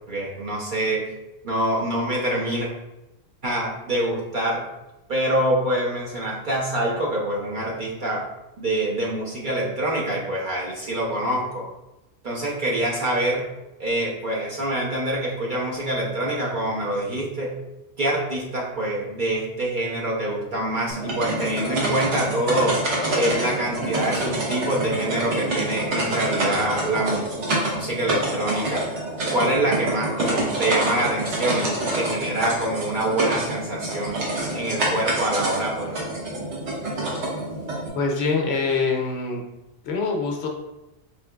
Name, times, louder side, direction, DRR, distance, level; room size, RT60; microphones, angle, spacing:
voice 1, 0.1-1.0 1.4-2.7 3.4-4.6 5.1-8.3 8.6-11.7 12.2-13.4 13.8-17.6 18.0-22.8 23.1-27.2 27.7-28.9 29.3-34.2 34.5-36.0, right 1 dB, 50° right, -3 dB, 0.7 m, -25 dB
sound 1, 20.9-37.9, right 1 dB, 70° right, 1.1 m, -27 dB
voice 2, 37.9-39.4 39.8-40.5, left 4 dB, 70° left, 2 dB, 0.8 m, -24 dB
4.3 x 2.8 x 2.2 m, 0.95 s
omnidirectional pair, 1.2 m